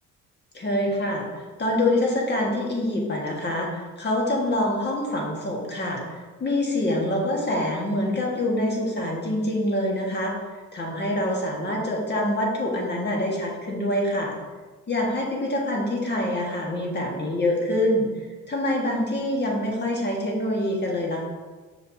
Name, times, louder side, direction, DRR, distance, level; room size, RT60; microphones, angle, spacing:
voice 1, 0.5-10.3 10.7-14.3 14.9-18.1 18.5-21.2, left 1 dB, 35° left, -1 dB, 1.6 m, -25 dB
6.7 x 5.1 x 2.7 m, 1.3 s
cardioid pair, 90°, 30 cm